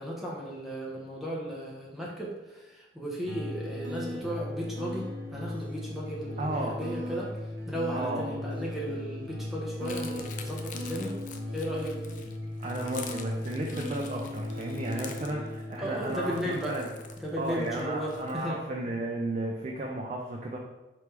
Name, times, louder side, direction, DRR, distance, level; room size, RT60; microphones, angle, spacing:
voice 1, 0.0-7.3 7.7-11.2 11.5-12.0 15.8-16.7 17.2-18.6, equal, ahead, -5 dB, 0.7 m, -35 dB
sound 1, 3.3-18.3, left 1 dB, 90° right, 0.8 m, -38 dB
voice 2, 6.4-6.8 7.9-8.3 12.6-16.9 17.4-20.6, right 1 dB, 40° right, -1 dB, 0.4 m, -34 dB
sound 2, 9.8-18.4, left 7 dB, 45° left, 0.4 m, -46 dB
3.4 x 3.0 x 4.5 m, 1.1 s
head